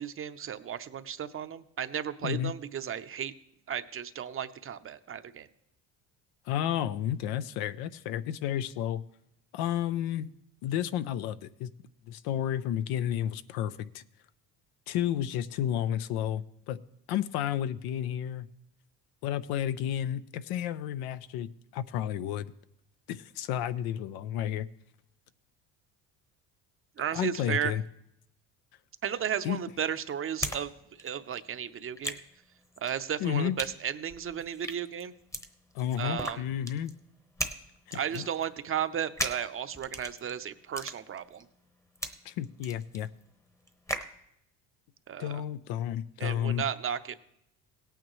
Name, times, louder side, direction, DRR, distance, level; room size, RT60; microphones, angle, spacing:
voice 1, 0.0-3.3 3.7-5.5 27.0-27.7 29.0-30.7 31.0-32.2 32.8-35.1 36.0-36.4 37.9-41.4 45.1-45.4 46.2-47.1, right 9 dB, 35° right, 11 dB, 0.7 m, -34 dB
voice 2, 2.2-2.5 6.5-9.0 9.5-10.3 10.6-11.7 12.1-14.0 14.9-16.8 17.1-18.5 19.2-22.5 23.1-24.7 27.1-27.8 29.4-29.6 33.2-33.5 35.7-36.9 37.9-38.3 42.2-43.1 45.2-46.6, left 10 dB, 80° left, 14 dB, 0.6 m, -31 dB
sound 1, 29.2-30.6 30.9-44.2, equal, 10° left, 0.9 m, -39 dB
17.0 x 9.0 x 3.1 m, 0.78 s
supercardioid pair, 95°, 37 cm